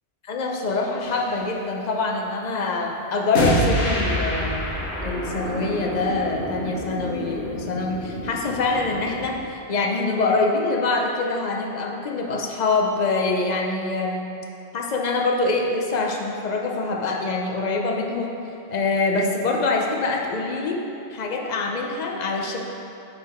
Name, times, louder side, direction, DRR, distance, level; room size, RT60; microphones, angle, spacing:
voice 1, 0.2-4.7 5.0-14.3 14.7-18.3 18.7-20.8 21.1-22.6, left 3 dB, 45° left, 0 dB, 0.7 m, -25 dB
sound 1, 1.0-1.3 3.3-9.3, equal, 75° left, 1.4 m, -27 dB
8.9 x 3.8 x 4.3 m, 2.7 s
omnidirectional pair, 1.1 m